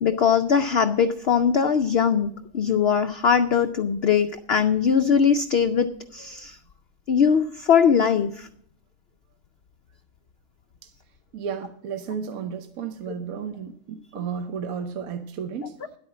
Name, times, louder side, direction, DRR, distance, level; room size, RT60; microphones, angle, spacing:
voice 1, 0.0-6.6 7.1-8.5, left 7 dB, 65° left, 0.6 m, -21 dB
voice 2, 11.3-15.8, right 6 dB, 70° right, 1.2 m, -33 dB
10.5 x 8.7 x 7.2 m
omnidirectional pair, 1.6 m